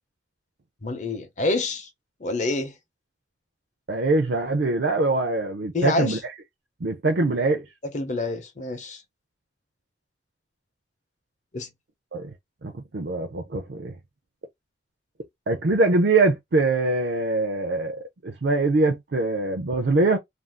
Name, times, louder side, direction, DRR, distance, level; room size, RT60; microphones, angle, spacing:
voice 1, 0.8-1.9 2.2-2.7 5.7-6.2 7.8-9.0 11.5-11.7, left 2 dB, 40° left, 0.7 m, -27 dB
voice 2, 3.9-6.2 6.8-7.6 12.1-12.3 12.6-13.9 15.5-18.0 18.2-20.2, right 2 dB, 60° right, 0.5 m, -23 dB
2.6 x 2.3 x 3.4 m
head